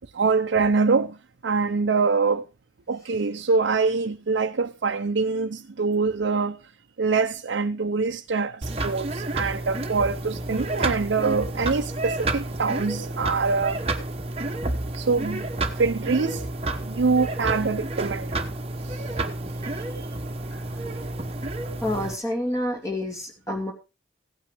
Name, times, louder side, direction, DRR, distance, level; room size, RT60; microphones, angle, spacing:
voice 1, 0.1-1.2 1.4-2.4 2.9-6.6 7.0-13.8 14.9-15.5 15.8-16.5 16.8-18.3 18.8-19.1, right 4 dB, 80° right, 0.6 m, -24 dB
sound 1, 8.6-22.2, right 2 dB, 30° right, 1.0 m, -30 dB
voice 2, 19.7-20.1 20.5-20.9 21.8-23.7, left 1 dB, 20° left, 2.6 m, -29 dB
16.0 x 9.0 x 3.4 m
head